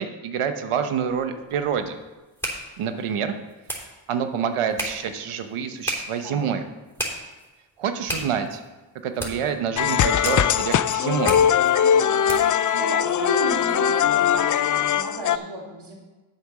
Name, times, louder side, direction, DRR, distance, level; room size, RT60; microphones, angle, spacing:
voice 1, 0.0-2.0 2.8-3.3 4.1-6.6 7.8-8.6 9.0-11.4, right 7 dB, 85° right, 8 dB, 1.0 m, -27 dB
sound 1, 1.1-12.7, right 1 dB, 5° left, 3.3 m, -36 dB
sound 2, 9.8-15.4, left 9 dB, 40° left, 0.4 m, -20 dB
voice 2, 12.7-15.9, right 2 dB, 50° right, -4 dB, 3.1 m, -34 dB
7.5 x 7.1 x 6.0 m, 1.2 s
cardioid pair, 60°, 50 cm